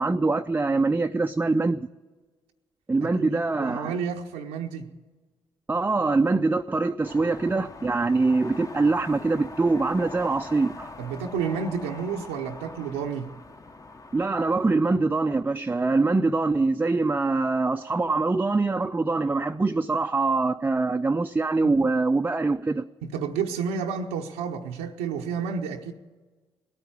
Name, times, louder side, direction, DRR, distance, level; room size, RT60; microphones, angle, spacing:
voice 1, 0.0-1.9 2.9-4.0 5.7-10.9 14.1-22.9, right 3 dB, 20° right, 0.5 m, -24 dB
voice 2, 3.0-4.9 11.0-13.3 21.6-21.8 23.0-25.9, right 6 dB, 85° right, 0.7 m, -31 dB
sound 1, 7.0-14.8, left 3 dB, 30° left, 1.2 m, -42 dB
18.0 x 9.1 x 8.5 m
hypercardioid pair, 50°, 11 cm